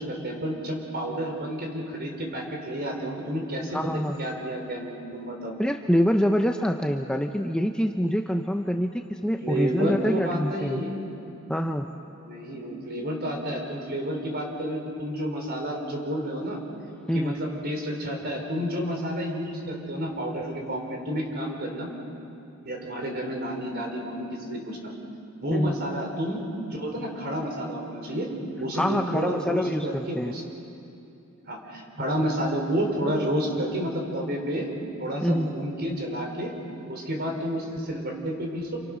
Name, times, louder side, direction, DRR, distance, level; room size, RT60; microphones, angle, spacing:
voice 1, 0.0-5.5 9.4-11.0 12.2-16.6 17.1-21.9 22.6-24.9 25.4-28.3 28.6-30.4 31.5-36.5 36.9-38.8, equal, 45° right, 1 dB, 4.8 m, -30 dB
voice 2, 3.7-4.2 5.6-10.8 11.5-11.9 17.1-17.4 25.5-25.8 28.8-30.4 35.2-35.5, equal, 5° left, 4 dB, 0.7 m, -25 dB
29.0 x 28.0 x 6.3 m, 2.7 s
head